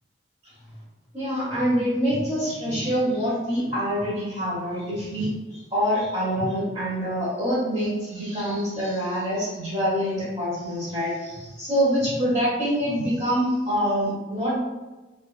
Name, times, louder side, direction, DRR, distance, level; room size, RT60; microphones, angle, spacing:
voice 1, 1.1-14.6, equal, 30° right, -10 dB, 0.8 m, -25 dB
2.4 x 2.2 x 2.3 m, 1.1 s
head